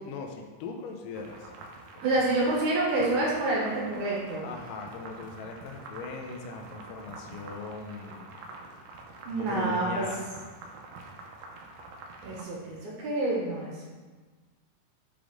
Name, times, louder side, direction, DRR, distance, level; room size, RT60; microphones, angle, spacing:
voice 1, 0.0-1.5 1.9-2.0 4.4-8.3 9.3-10.2, left 4 dB, 85° left, 2 dB, 2.3 m, -39 dB
sound 1, 1.1-12.4, right 3 dB, 85° right, 2.4 m, -46 dB
voice 2, 2.0-4.5 9.2-10.0 12.2-13.9, right 2 dB, 65° right, -4 dB, 2.5 m, -28 dB
6.2 x 5.2 x 3.6 m, 1.4 s
omnidirectional pair, 3.8 m